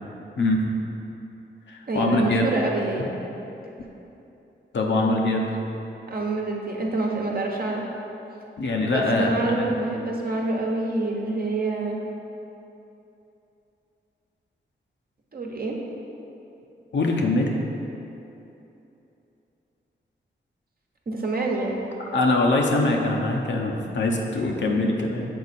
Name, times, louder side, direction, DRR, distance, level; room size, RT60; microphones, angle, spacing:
voice 1, 0.4-0.7 1.7-2.5 4.7-5.4 8.6-9.7 16.9-17.6 22.1-25.3, left 2 dB, 70° left, 0 dB, 0.8 m, -23 dB
voice 2, 1.9-3.1 6.1-7.8 8.9-12.0 15.3-15.8 21.1-21.8, right 2 dB, 50° right, -1 dB, 1.0 m, -27 dB
6.6 x 4.3 x 4.2 m, 3.0 s
cardioid pair, 50°, 19 cm